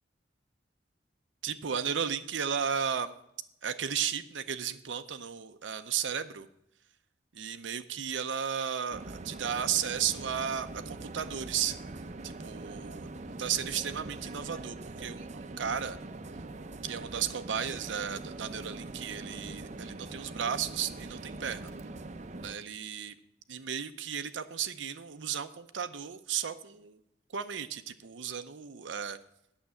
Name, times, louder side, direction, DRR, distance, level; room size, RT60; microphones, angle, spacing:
voice 1, 1.4-3.1 3.6-6.5 7.3-11.8 12.2-13.1 13.4-16.0 16.8-21.7 22.4-23.1 23.5-27.0 27.3-29.2, right 8 dB, 80° right, 9 dB, 0.6 m, -34 dB
sound 1, 8.9-22.6, right 2 dB, 40° right, 0.6 m, -43 dB
8.9 x 6.6 x 8.2 m, 0.78 s
head